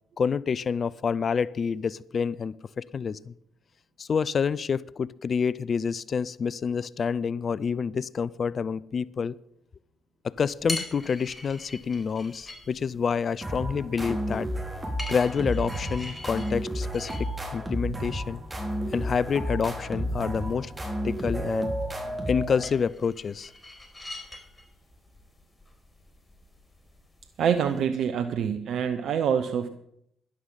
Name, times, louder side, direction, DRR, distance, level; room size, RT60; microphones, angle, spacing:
voice 1, 0.2-3.3 4.0-9.4 10.2-14.5 15.1-18.4 18.9-21.7 22.3-23.5, left 6 dB, 50° left, 20 dB, 0.4 m, -28 dB
sound 1, 10.4-27.9, left 2 dB, 25° left, 4.4 m, -44 dB
sound 2, 13.4-22.9, equal, 25° right, 4.4 m, -32 dB
voice 2, 27.4-29.7, right 8 dB, 65° right, 9 dB, 0.8 m, -26 dB
13.0 x 11.0 x 5.5 m, 0.75 s
hypercardioid pair, 45°, 0 cm